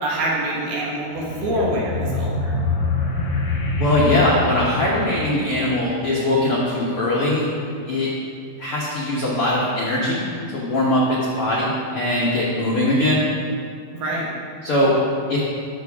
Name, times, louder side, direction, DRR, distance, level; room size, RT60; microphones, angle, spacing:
voice 1, 0.0-2.3 13.9-14.3, right 1 dB, 80° right, -4 dB, 3.4 m, -25 dB
sound 1, 1.1-6.1, left 2 dB, 70° left, 1.4 m, -25 dB
voice 2, 3.7-7.5 7.9-8.1 8.6-10.2 10.5-13.2 14.6-14.9 15.3-15.4, left 1 dB, 85° left, -6 dB, 1.2 m, -21 dB
13.0 x 6.2 x 3.5 m, 2.3 s
omnidirectional pair, 4.4 m